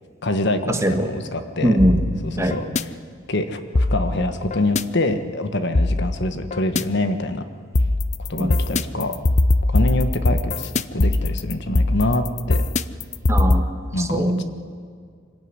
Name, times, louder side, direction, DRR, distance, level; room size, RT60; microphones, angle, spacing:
voice 1, 0.2-1.9 2.2-2.9 3.3-7.4 8.3-9.2 9.7-12.6 13.9-14.4, left 2 dB, 60° left, 8 dB, 1.4 m, -25 dB
voice 2, 1.6-2.0 2.4-2.6 8.4-8.5 13.3-13.6 14.1-14.4, equal, 15° right, 5 dB, 1.7 m, -19 dB
sound 1, 1.8-2.8 3.7-4.8 5.7-6.8 7.7-13.6, left 2 dB, 35° left, 0.6 m, -21 dB
25.0 x 16.0 x 9.8 m, 2.1 s
head